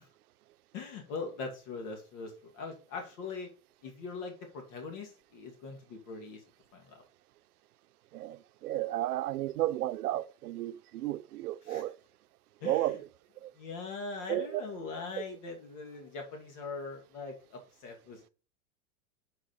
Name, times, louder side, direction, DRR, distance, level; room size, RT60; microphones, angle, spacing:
voice 1, 0.7-3.5 3.8-6.4 6.7-7.0 11.7-11.8 12.6-12.9 13.6-18.3, left 4 dB, 55° left, 2.4 m, -41 dB
voice 2, 8.1-12.0 12.6-13.1 13.4-13.5 14.3-14.6, right 14 dB, 85° right, 0.6 m, -33 dB
7.2 x 4.9 x 4.2 m
hypercardioid pair, 125°, 44 cm